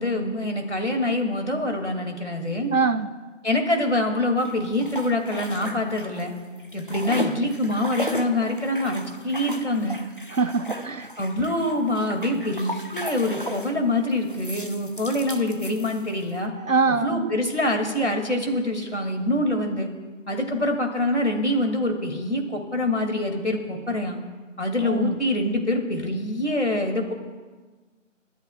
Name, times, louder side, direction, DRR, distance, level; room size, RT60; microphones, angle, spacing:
voice 1, 0.0-2.7 3.4-6.3 6.7-10.0 11.2-16.5 16.9-19.9 20.3-24.2 24.6-27.1, left 1 dB, 60° left, 3 dB, 2.7 m, -25 dB
voice 2, 2.7-3.1 10.3-11.1 16.7-17.3 24.8-25.1, right 4 dB, 85° right, 13 dB, 0.9 m, -23 dB
sound 1, 4.4-6.3 6.6-13.8 14.3-16.3, equal, 45° left, 0.7 m, -36 dB
29.0 x 13.0 x 2.5 m, 1.4 s
figure-of-eight pair, 175°, 39 cm